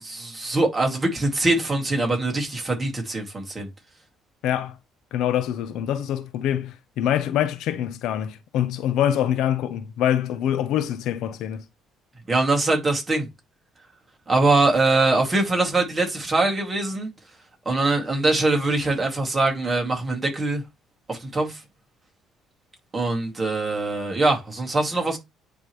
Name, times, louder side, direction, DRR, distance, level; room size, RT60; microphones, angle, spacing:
voice 1, 0.0-3.7 12.3-13.3 14.3-17.1 17.7-20.6 21.1-21.6 22.9-25.2, right 2 dB, 20° right, 2.4 m, -23 dB
voice 2, 4.4-4.8 5.1-11.6, left 10 dB, 75° left, 0.7 m, -25 dB
9.5 x 3.4 x 3.2 m
cardioid pair, 120°, 0 cm